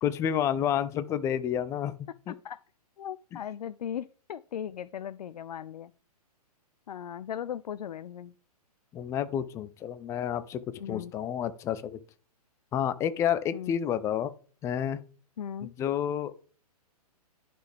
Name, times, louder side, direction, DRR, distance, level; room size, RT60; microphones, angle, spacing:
voice 1, 0.0-2.4 8.9-10.6 10.9-12.0 12.7-14.3 14.6-15.0 15.6-16.4, left 9 dB, 15° left, 0.4 m, -30 dB
voice 2, 3.0-5.9 6.9-8.3 10.8-11.1 13.5-13.7 15.4-15.7, left 9 dB, 75° left, 0.4 m, -38 dB
11.0 x 4.3 x 3.4 m
hypercardioid pair, 130°, 20 cm